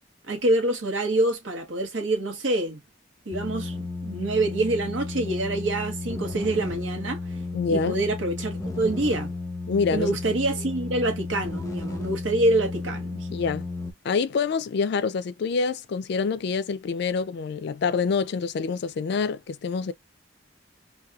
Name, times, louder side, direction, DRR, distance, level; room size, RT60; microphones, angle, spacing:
voice 1, 0.3-2.8 3.3-7.2 7.7-9.3 9.9-13.3, right 2 dB, 75° right, 0.9 m, -26 dB
sound 1, 3.3-13.9, left 3 dB, 15° left, 0.6 m, -33 dB
voice 2, 7.5-8.0 9.7-10.1 13.3-13.7 14.0-19.9, left 5 dB, 60° left, 0.3 m, -26 dB
2.7 x 2.2 x 2.3 m
head